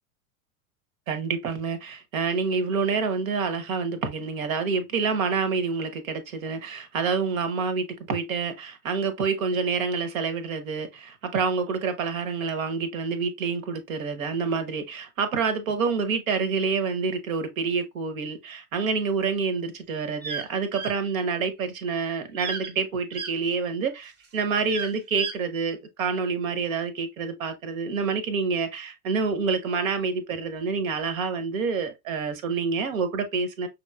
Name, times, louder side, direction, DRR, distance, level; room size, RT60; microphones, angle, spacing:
voice 1, 1.1-33.7, right 5 dB, 65° right, 1.1 m, -27 dB
sound 1, 20.2-20.5 20.7-20.9 22.4-22.7 23.1-23.3 24.7-25.4, right 5 dB, 25° right, 0.9 m, -33 dB
5.8 x 3.2 x 2.3 m
figure-of-eight pair, 85°, 44 cm